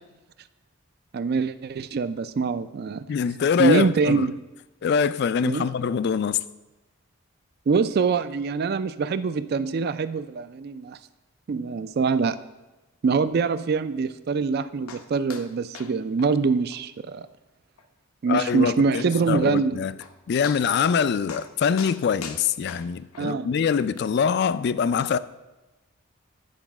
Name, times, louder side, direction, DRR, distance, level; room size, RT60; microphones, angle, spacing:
voice 1, 1.1-3.1 3.6-4.3 5.4-5.7 7.7-11.0 11.5-12.4 13.0-17.3 18.2-19.8 23.2-23.5, right 5 dB, 50° right, 0.3 m, -24 dB
voice 2, 3.1-4.3 4.8-6.4 18.3-19.9 20.3-25.2, left 6 dB, 50° left, 0.3 m, -24 dB
sound 1, 14.9-15.0 15.3-15.5 15.7-15.9 16.2-16.3 16.7-16.8 17.2-17.3 17.8-17.9 19.6-19.7 20.0-20.1 20.4-21.0 21.3-21.5 21.8-23.3 24.0-24.1, left 5 dB, 90° left, 0.8 m, -39 dB
9.2 x 4.8 x 5.9 m
head